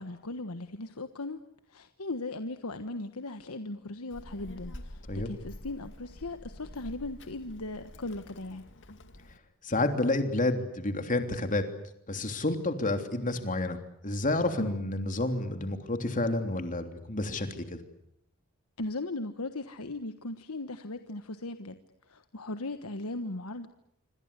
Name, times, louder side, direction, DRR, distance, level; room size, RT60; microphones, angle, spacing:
voice 1, 0.0-1.4 1.7-8.6 14.6-14.8 18.8-21.8 22.1-23.7, left 2 dB, 80° left, 9 dB, 1.4 m, -38 dB
Child speech kid speaking, 4.1-9.4, left 1 dB, 60° left, 2.4 m, -47 dB
voice 2, 9.6-11.6 12.1-17.8, left 2 dB, 35° left, 6 dB, 3.2 m, -30 dB
27.0 x 26.0 x 8.3 m, 0.75 s
head